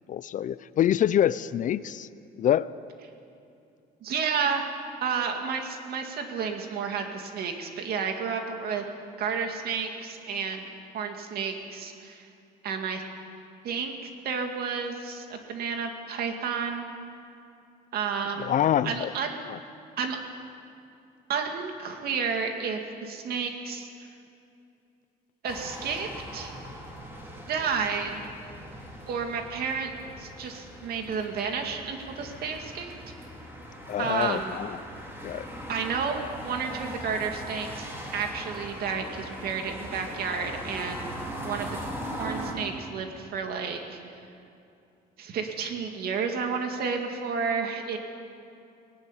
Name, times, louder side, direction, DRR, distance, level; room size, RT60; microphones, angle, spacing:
voice 1, 0.1-2.1 2.4-2.7 18.4-19.1 19.5-19.6 33.9-34.8 35.2-35.5, left 10 dB, 50° left, 17 dB, 0.5 m, -26 dB
voice 2, 4.0-4.7 5.0-8.8 9.2-10.6 10.9-12.3 12.6-13.0 13.6-13.9 14.2-16.9 17.9-18.5 18.8-19.5 20.0-20.2 21.3-23.9 25.4-26.5 27.5-28.2 29.1-29.9 30.2-32.9 34.0-34.6 35.7-41.1 41.4-44.0 45.2-48.0, right 6 dB, 65° right, 4 dB, 2.4 m, -31 dB
sound 1, 25.5-42.5, equal, 15° right, 4.6 m, -40 dB
19.5 x 16.0 x 10.0 m, 2.6 s
cardioid pair, 110°, 17 cm